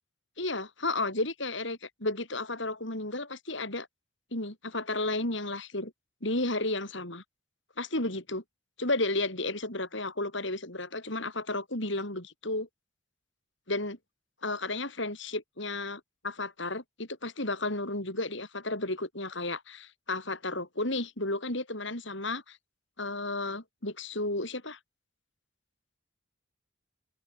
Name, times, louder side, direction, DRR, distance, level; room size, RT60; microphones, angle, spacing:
voice 1, 0.4-3.9 4.3-5.9 6.2-7.2 7.8-8.4 8.8-12.7 13.7-14.0 14.4-22.6 23.0-24.8, left 2 dB, 60° left, 6.6 m, -33 dB
open air
head